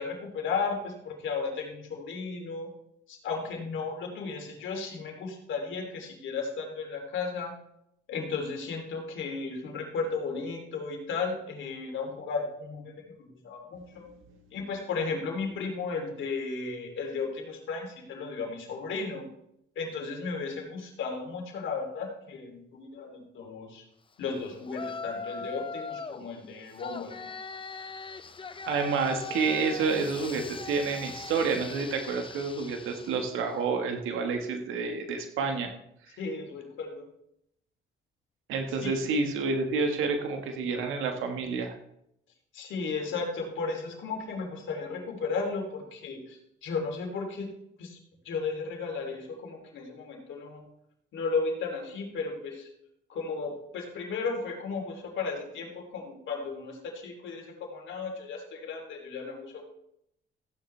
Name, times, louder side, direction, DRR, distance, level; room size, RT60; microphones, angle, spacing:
voice 1, 0.0-2.7 3.1-7.5 8.1-14.1 14.5-19.2 19.7-23.8 24.2-27.2 36.2-37.1 38.8-39.0 42.5-47.5 47.8-48.0 48.2-50.6 51.1-52.7 53.1-59.6, left 4 dB, 75° left, 2 dB, 3.2 m, -34 dB
Yell, 24.7-26.2 26.8-33.5, left 4 dB, 25° left, 0.8 m, -40 dB
voice 2, 28.7-35.7 38.5-41.8, right 4 dB, 90° right, 4 dB, 1.7 m, -29 dB
15.0 x 9.7 x 3.4 m, 0.78 s
cardioid pair, 90°, 20 cm